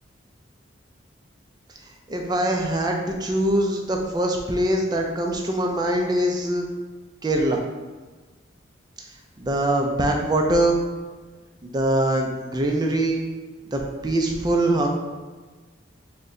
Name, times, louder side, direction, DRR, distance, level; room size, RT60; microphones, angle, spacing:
voice 1, 2.1-6.7 7.2-7.6 9.4-10.8 11.6-13.2 13.7-14.9, right 1 dB, 20° right, 1 dB, 0.4 m, -23 dB
4.0 x 2.2 x 3.6 m, 1.3 s
head